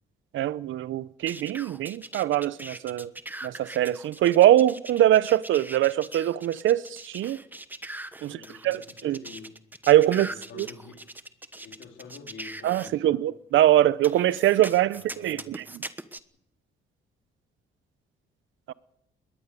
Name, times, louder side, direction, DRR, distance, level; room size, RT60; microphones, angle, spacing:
voice 1, 0.3-3.1 3.4-7.4 8.2-8.4 8.6-9.2 9.9-10.3 10.6-10.7 12.6-15.6 18.7-18.8, right 13 dB, 75° right, 0.8 m, -22 dB
sound 1, 1.3-12.9 14.0-16.2, right 1 dB, 10° right, 1.2 m, -41 dB
voice 2, 8.2-9.6 10.3-11.1 11.6-13.2 14.9-15.5, left 5 dB, 75° left, 3.7 m, -47 dB
21.0 x 18.5 x 6.9 m
cardioid pair, 90°, 20 cm